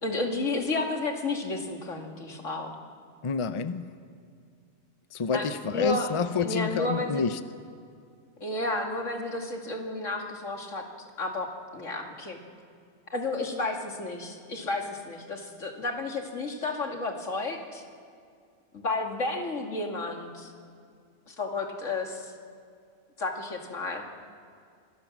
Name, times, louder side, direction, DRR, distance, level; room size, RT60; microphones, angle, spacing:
voice 1, 0.0-2.8 5.3-6.1 6.4-7.2 8.4-10.8 11.2-11.5 11.7-12.4 13.1-17.8 18.7-20.5 21.3-22.3 23.2-24.0, left 2 dB, 85° left, 2 dB, 2.7 m, -32 dB
voice 2, 3.2-3.9 5.1-7.4, left 5 dB, 30° left, 12 dB, 0.7 m, -28 dB
25.0 x 17.0 x 7.3 m, 2.3 s
omnidirectional pair, 1.3 m